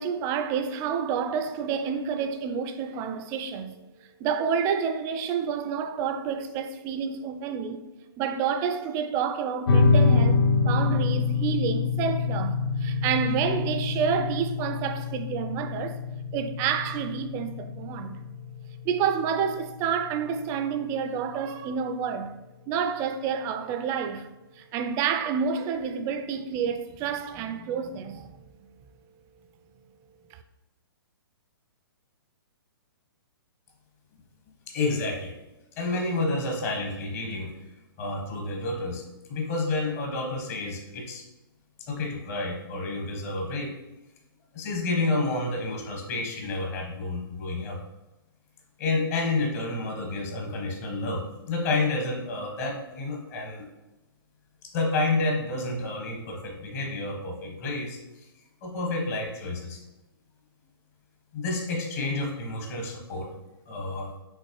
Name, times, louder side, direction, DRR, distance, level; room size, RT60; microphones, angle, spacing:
voice 1, 0.0-3.8 4.2-7.8 8.2-16.0 16.3-18.2 18.8-22.4 22.7-24.3 24.6-28.4, right 7 dB, 25° right, 0.4 m, -29 dB
sound 1, 9.7-20.7, left 4 dB, 70° left, 0.6 m, -26 dB
voice 2, 34.7-35.3 35.8-37.5 38.0-39.0 39.3-41.2 41.8-43.8 44.5-47.8 48.8-53.7 54.7-58.0 58.6-59.8 61.3-63.3 63.7-64.1, left 2 dB, 40° left, 1.3 m, -29 dB
5.7 x 3.1 x 3.1 m
hypercardioid pair, 135°, 13 cm